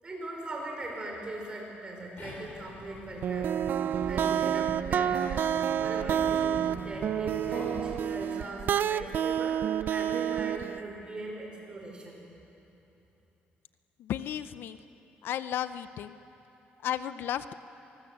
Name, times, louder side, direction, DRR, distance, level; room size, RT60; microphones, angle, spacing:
voice 1, 0.0-3.6 4.0-5.5 5.8-12.2, right 2 dB, 25° right, 0 dB, 5.5 m, -40 dB
sound 1, 2.2-8.0, left 2 dB, 50° left, 5.5 m, -46 dB
sound 2, 3.2-10.8, right 9 dB, 55° right, 0.5 m, -29 dB
voice 2, 14.0-14.8 15.2-16.2 16.8-17.5, left 10 dB, 70° left, 13 dB, 0.6 m, -33 dB
25.0 x 19.5 x 8.1 m, 3.0 s
cardioid pair, 130°, 4 cm